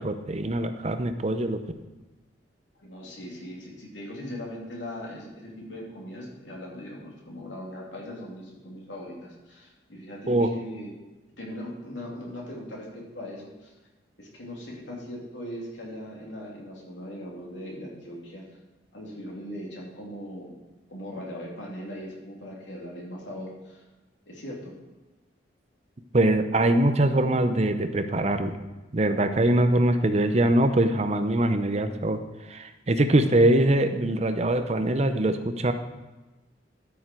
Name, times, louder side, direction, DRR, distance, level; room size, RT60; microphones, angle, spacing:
voice 1, 0.0-1.6 10.3-10.5 26.1-28.6 28.9-32.2 32.5-35.7, right 1 dB, 35° right, 9 dB, 0.7 m, -23 dB
voice 2, 2.8-10.9 11.4-13.7 14.2-18.5 18.9-20.6 20.9-23.8 24.3-24.8, equal, 90° left, -2 dB, 3.0 m, -39 dB
13.0 x 6.7 x 4.6 m, 1.1 s
head